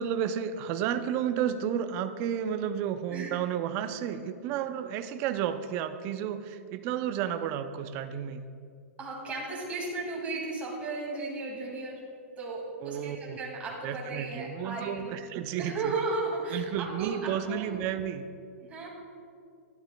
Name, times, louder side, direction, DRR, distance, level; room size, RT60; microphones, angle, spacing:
voice 1, 0.0-8.4 12.8-13.4 13.8-15.9 16.5-18.3, right 9 dB, 35° right, 10 dB, 0.5 m, -32 dB
voice 2, 9.0-12.0 12.4-15.2 15.6-17.8 18.6-18.9, right 3 dB, 20° right, -3 dB, 2.1 m, -35 dB
11.5 x 11.5 x 2.2 m, 2.3 s
hypercardioid pair, 145°, 8 cm